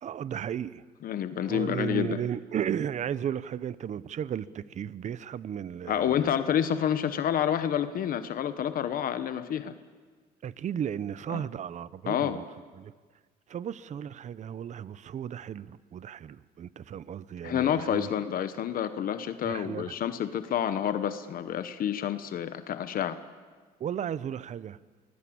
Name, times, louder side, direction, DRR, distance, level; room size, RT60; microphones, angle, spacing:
voice 1, 0.0-0.8 1.5-6.4 10.4-12.4 12.7-12.9 13.5-18.1 19.4-19.9 23.8-24.8, right 9 dB, 45° right, 17 dB, 0.8 m, -34 dB
voice 2, 1.0-2.2 5.9-9.7 11.3-11.4 12.1-12.4 17.4-23.2, left 9 dB, 55° left, 11 dB, 1.1 m, -29 dB
24.5 x 20.0 x 8.7 m, 1.5 s
cardioid pair, 110°, 17 cm